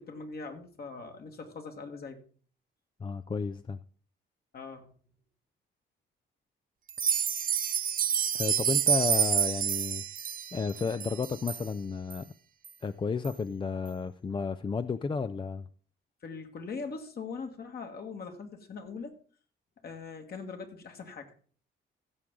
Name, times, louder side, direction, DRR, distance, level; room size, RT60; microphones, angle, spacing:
voice 1, 0.0-2.2 4.5-4.9 16.2-19.2 19.8-21.3, left 4 dB, 50° left, 4 dB, 2.0 m, -41 dB
voice 2, 3.0-3.8 8.3-10.0 10.5-12.3 12.8-15.7, left 5 dB, 25° left, 12 dB, 0.4 m, -32 dB
sound 1, 6.9-11.6 12.1-12.2 12.6-12.7 13.2-13.3, right 8 dB, 45° right, 0.7 m, -28 dB
16.0 x 6.9 x 3.7 m, 0.42 s
cardioid pair, 90°, 20 cm